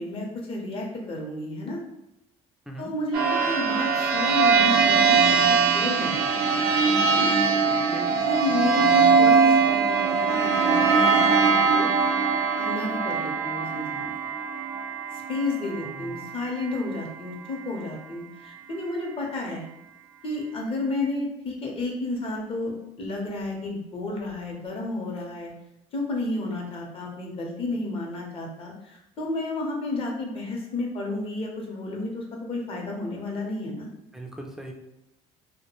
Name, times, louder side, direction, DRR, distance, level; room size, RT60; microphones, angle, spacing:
voice 1, 0.0-1.8 2.8-6.4 7.1-7.3 8.2-11.9 12.6-14.1 15.1-19.6 20.2-25.5 25.9-33.9, left 2 dB, 40° left, 0 dB, 0.7 m, -31 dB
sound 1, 3.1-16.4, right 5 dB, 85° right, 0.5 m, -21 dB
voice 2, 7.6-8.2 15.8-16.2 34.1-34.7, right 1 dB, 5° right, 2 dB, 0.3 m, -39 dB
2.3 x 2.1 x 2.9 m, 0.89 s
cardioid pair, 110°, 14 cm